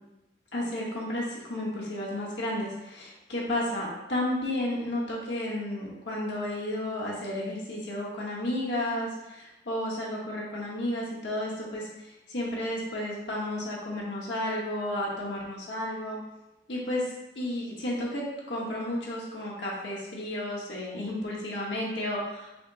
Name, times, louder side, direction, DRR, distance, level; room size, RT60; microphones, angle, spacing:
voice 1, 0.5-16.2 16.7-17.1 17.3-22.5, left 1 dB, 80° left, -5 dB, 1.1 m, -32 dB
6.0 x 2.0 x 3.7 m, 0.95 s
head